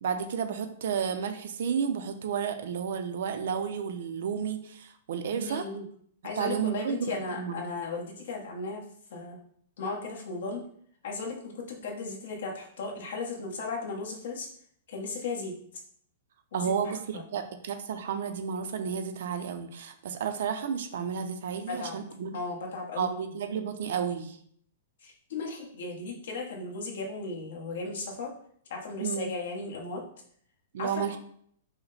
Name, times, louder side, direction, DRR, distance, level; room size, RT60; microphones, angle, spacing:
voice 1, 0.0-5.7 6.4-7.6 16.5-22.4 23.0-24.4 29.0-29.3 30.7-31.2, right 7 dB, 55° right, 7 dB, 0.5 m, -32 dB
voice 2, 5.3-5.8 6.2-8.8 9.1-9.4 9.8-10.6 11.0-14.5 14.9-15.6 16.5-16.7 17.1-17.2 21.7-22.0 22.3-23.1 25.0-28.4 28.7-30.0 30.8-31.2, left 3 dB, 55° left, 0 dB, 1.2 m, -36 dB
5.7 x 2.2 x 4.1 m, 0.63 s
hypercardioid pair, 180°, 0 cm